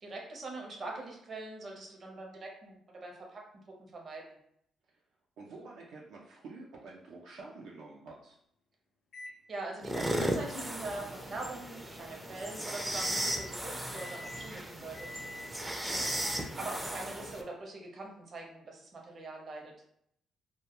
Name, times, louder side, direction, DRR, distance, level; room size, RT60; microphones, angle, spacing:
voice 1, 0.0-4.3 9.5-15.1 16.6-19.7, right 2 dB, 45° right, 0 dB, 0.7 m, -43 dB
voice 2, 5.4-8.4 15.9-16.6, right 3 dB, 80° right, -3 dB, 0.4 m, -49 dB
Microwave oven, 9.1-9.4 9.9-16.8, left 1 dB, 60° left, 0.3 m, -49 dB
sound 1, 9.8-17.4, right 1 dB, 10° right, 0.4 m, -36 dB
2.2 x 2.2 x 2.9 m, 0.73 s
cardioid pair, 90°, 0 cm